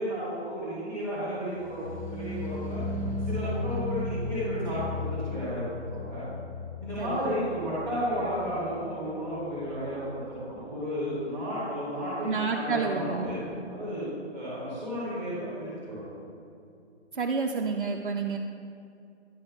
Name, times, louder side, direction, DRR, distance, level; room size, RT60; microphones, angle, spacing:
voice 1, 0.0-2.8 3.3-6.2 6.8-13.4 13.7-16.0, equal, 5° left, -12 dB, 1.7 m, -33 dB
sound 1, 1.6-8.7 8.9-9.4 9.7-9.8, left 2 dB, 30° left, 0.6 m, -35 dB
voice 2, 3.7-4.1 7.0-7.3 12.3-13.5 17.1-18.4, right 5 dB, 50° right, 1 dB, 0.5 m, -30 dB
10.5 x 4.9 x 6.1 m, 2.4 s
hypercardioid pair, 180°, 35 cm